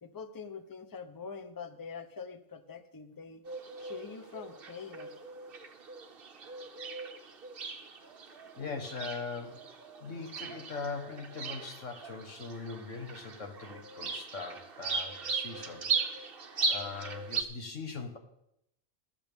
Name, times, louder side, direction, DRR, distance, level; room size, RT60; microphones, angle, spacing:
voice 1, 0.0-3.4 3.8-5.1, left 5 dB, 20° left, 9 dB, 0.6 m, -44 dB
sound 1, 3.4-17.4, right 4 dB, 50° right, 1.1 m, -38 dB
voice 2, 8.6-9.7 10.0-15.9 16.7-18.2, left 4 dB, 70° left, 4 dB, 1.8 m, -41 dB
14.5 x 13.0 x 3.6 m, 0.80 s
omnidirectional pair, 1.3 m